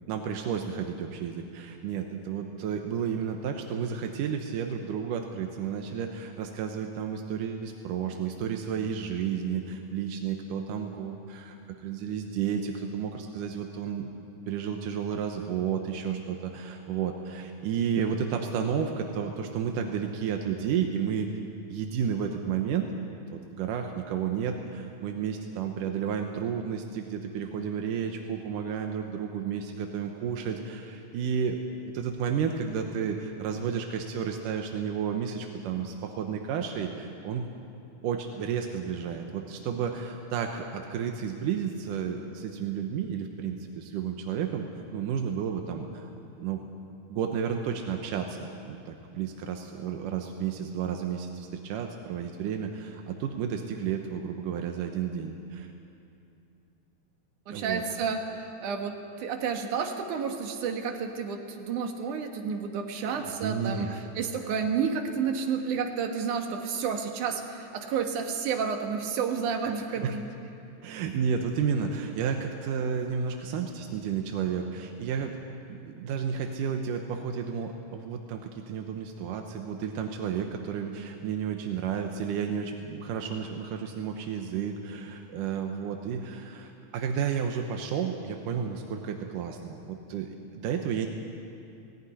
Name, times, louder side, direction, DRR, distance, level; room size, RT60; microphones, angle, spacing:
voice 1, 0.1-11.6 11.8-14.1 14.5-21.3 21.7-22.9 23.3-31.6 31.9-37.5 38.0-46.1 46.4-46.6 47.1-55.7 57.5-57.8 63.0-64.1 69.6-70.1 70.8-75.4 75.7-91.1, right 7 dB, 90° right, 4 dB, 2.6 m, -32 dB
voice 2, 57.5-63.9 64.2-70.3, right 6 dB, 70° right, 3 dB, 3.0 m, -30 dB
17.5 x 17.5 x 9.8 m, 2.6 s
omnidirectional pair, 3.7 m